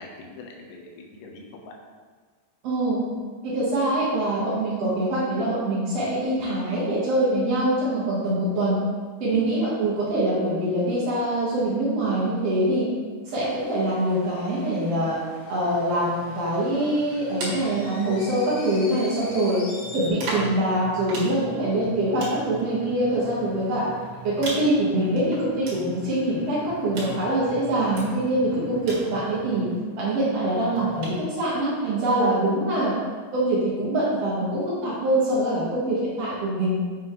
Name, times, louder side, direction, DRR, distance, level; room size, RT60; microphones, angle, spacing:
voice 1, 0.0-1.7 9.3-9.5 19.2-19.6 21.6-21.7 28.5-28.9 30.5-30.7, left 4 dB, 85° left, 0 dB, 3.4 m, -40 dB
voice 2, 2.6-3.0 3.4-8.8 9.2-12.9 13.3-15.2 15.5-19.6 19.9-23.9 24.2-29.7 30.0-32.9 33.3-36.8, right 1 dB, 85° right, -7 dB, 1.4 m, -24 dB
sound 1, 13.3-20.1, left 1 dB, 65° left, 2.5 m, -44 dB
sound 2, 15.7-18.9 19.8-29.9 30.7-31.2, right 2 dB, 60° right, 3.4 m, -39 dB
7.2 x 7.1 x 3.1 m, 1.5 s
omnidirectional pair, 5.3 m